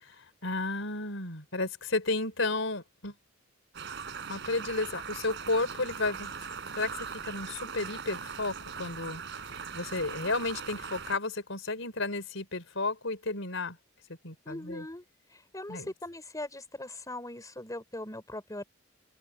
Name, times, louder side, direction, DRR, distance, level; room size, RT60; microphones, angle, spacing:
voice 1, 0.0-3.1 4.3-6.3 6.7-9.2 9.7-13.8 14.2-14.8 15.7-15.9, left 3 dB, 70° left, 4.8 m, -32 dB
sound 1, 3.7-11.2, right 6 dB, 60° right, 3.8 m, -40 dB
voice 2, 14.4-15.0 15.3-18.6, left 1 dB, 15° left, 4.7 m, -40 dB
open air
head